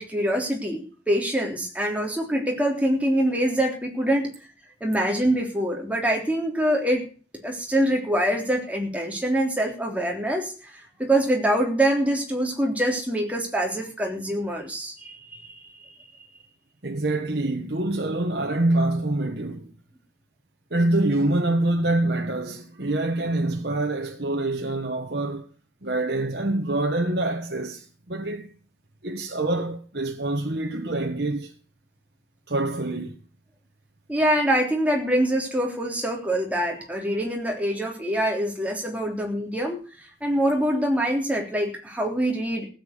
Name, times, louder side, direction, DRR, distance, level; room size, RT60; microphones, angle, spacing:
voice 1, 0.0-4.3 4.8-7.0 7.4-15.6 34.1-42.7, right 1 dB, 10° right, 3.4 m, -25 dB
voice 2, 16.8-19.7 20.7-25.5 25.8-28.5 29.0-31.5 32.5-33.2, right 2 dB, 55° right, 1.4 m, -25 dB
15.5 x 8.4 x 6.7 m
head